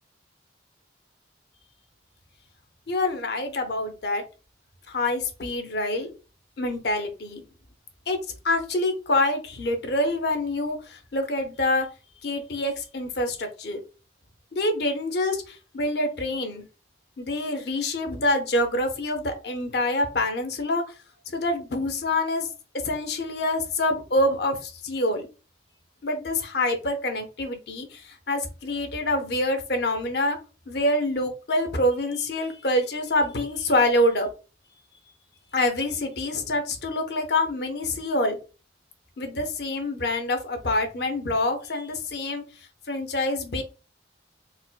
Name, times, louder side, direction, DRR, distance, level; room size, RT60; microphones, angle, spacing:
voice 1, 2.9-4.2 4.9-6.1 6.6-7.4 8.1-8.2 8.4-11.9 12.2-13.8 14.5-16.6 17.2-20.8 21.3-22.5 22.8-25.3 26.0-30.4 30.7-34.3 35.5-38.4 39.2-42.4 42.9-43.6, left 1 dB, 55° left, 5 dB, 0.7 m, -26 dB
4.2 x 2.1 x 2.2 m, 0.32 s
head